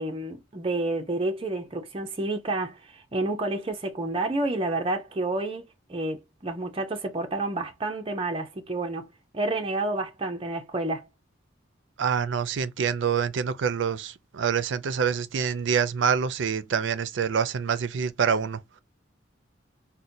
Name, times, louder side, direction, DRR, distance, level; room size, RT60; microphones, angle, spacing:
voice 1, 0.0-5.6 5.9-9.1 9.3-11.1, right 2 dB, 30° right, 0.6 m, -29 dB
voice 2, 12.0-18.6, right 7 dB, 75° right, 0.4 m, -26 dB
4.1 x 2.1 x 2.6 m
head